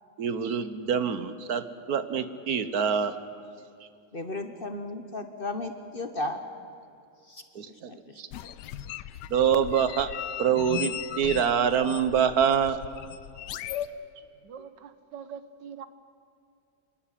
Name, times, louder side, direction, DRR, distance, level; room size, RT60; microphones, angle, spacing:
voice 1, 0.2-3.2 7.5-7.9 8.2-8.3 9.3-10.1 10.4-12.8, right 7 dB, 60° right, 12 dB, 1.4 m, -25 dB
voice 2, 4.1-6.4 7.3-7.4 7.9-8.0 8.3-8.4, left 2 dB, 35° left, 8 dB, 1.2 m, -34 dB
sound 1, 8.3-13.9, left 11 dB, 80° left, 1.3 m, -37 dB
voice 3, 14.4-15.9, right 7 dB, 90° right, 12 dB, 1.7 m, -43 dB
27.0 x 11.5 x 9.9 m, 2.5 s
omnidirectional pair, 1.8 m